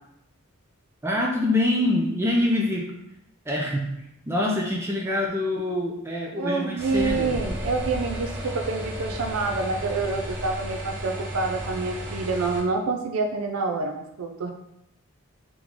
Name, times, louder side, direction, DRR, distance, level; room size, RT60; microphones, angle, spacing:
voice 1, 1.0-2.9 3.5-3.9 4.3-7.4, left 1 dB, 10° right, -2 dB, 0.4 m, -25 dB
voice 2, 6.4-14.5, right 3 dB, 80° right, 4 dB, 0.4 m, -27 dB
sound 1, 6.8-12.6, equal, 60° right, 1.0 m, -33 dB
3.7 x 3.0 x 3.5 m, 0.81 s
head